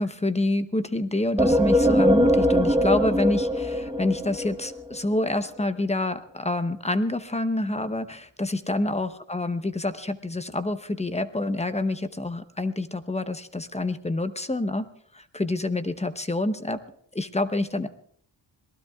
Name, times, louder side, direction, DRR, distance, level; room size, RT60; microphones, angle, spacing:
voice 1, 0.0-16.8 17.1-17.9, left 2 dB, 15° left, 10 dB, 0.8 m, -27 dB
sound 1, 1.4-5.0, equal, 10° right, 1.1 m, -22 dB
26.0 x 19.5 x 2.4 m, 0.62 s
wide cardioid pair, 115°, 45 cm